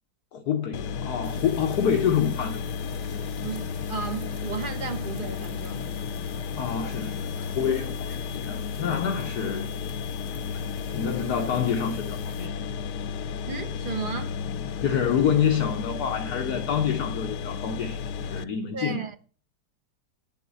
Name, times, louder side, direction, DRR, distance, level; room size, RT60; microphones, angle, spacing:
voice 1, 0.3-2.6 6.6-9.7 10.9-12.5 14.8-19.0, left 8 dB, 70° left, 1.6 m, -27 dB
sound 1, 0.7-18.4, left 6 dB, 85° left, 1.3 m, -33 dB
sound 2, 1.2-12.5, left 3 dB, 20° left, 1.5 m, -50 dB
voice 2, 3.4-5.9 8.9-9.0 13.5-14.4 18.7-19.2, right 5 dB, 40° right, 0.8 m, -34 dB
9.0 x 7.7 x 8.1 m
omnidirectional pair, 1.8 m